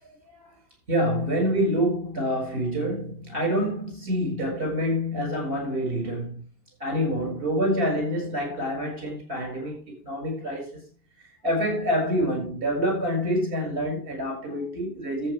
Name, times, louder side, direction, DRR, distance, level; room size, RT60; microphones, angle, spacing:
voice 1, 0.9-6.4 6.8-10.9 11.2-15.3, equal, 40° right, 7.3 m, -27 dB
14.5 x 8.3 x 3.6 m
omnidirectional pair, 1.8 m